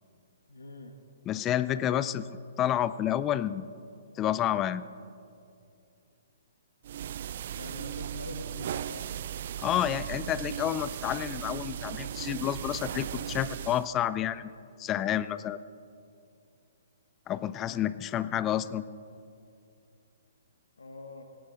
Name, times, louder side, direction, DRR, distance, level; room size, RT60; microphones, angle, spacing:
voice 1, 0.5-1.0 1.7-2.1 7.5-9.1 20.8-21.2, left 2 dB, 85° left, 5 dB, 1.3 m, -44 dB
voice 2, 1.3-2.2 2.6-3.7 4.2-4.8 9.6-14.5 14.8-15.6 17.3-18.9, left 11 dB, 25° left, 16 dB, 0.5 m, -29 dB
sound 1, 6.8-13.9, right 10 dB, 55° right, 0.3 m, -37 dB
17.5 x 17.0 x 3.9 m, 2.5 s
hypercardioid pair, 135°, 0 cm